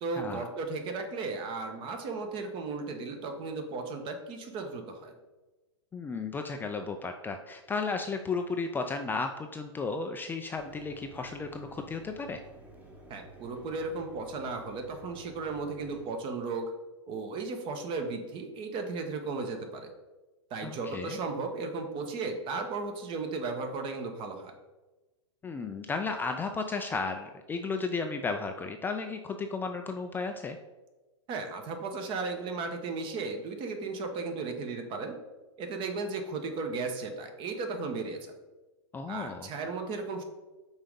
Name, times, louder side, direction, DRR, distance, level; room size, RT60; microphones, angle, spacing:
voice 1, 0.0-5.1 13.1-16.7 17.1-19.9 20.5-24.5 31.3-35.2 35.6-38.3 39.1-40.2, right 3 dB, 35° right, 5 dB, 1.1 m, -35 dB
voice 2, 5.9-12.4 20.6-21.2 25.4-30.6 38.9-39.5, left 4 dB, 15° left, 5 dB, 0.4 m, -34 dB
Mechanisms, 10.6-16.0, right 1 dB, 10° right, 1.3 m, -52 dB
5.6 x 3.9 x 5.3 m, 1.1 s
hypercardioid pair, 110°, 15 cm